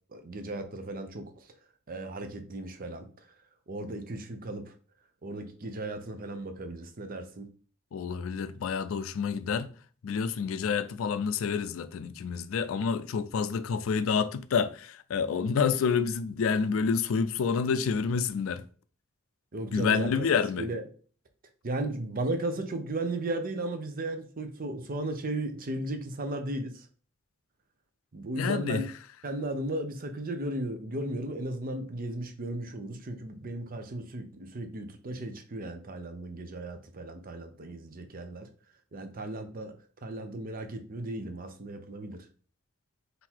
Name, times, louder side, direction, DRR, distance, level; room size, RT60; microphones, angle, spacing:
voice 1, 0.1-1.3 1.9-3.1 3.7-4.7 5.2-7.5 19.5-20.3 20.6-20.8 21.6-26.9 28.1-28.9 29.2-38.5 38.9-39.7 40.0-42.3, right 1 dB, 45° right, 0.7 m, -35 dB
voice 2, 7.9-9.7 10.0-18.6 19.7-20.7 28.4-28.8, left 6 dB, 80° left, 0.4 m, -28 dB
3.8 x 2.7 x 4.4 m
head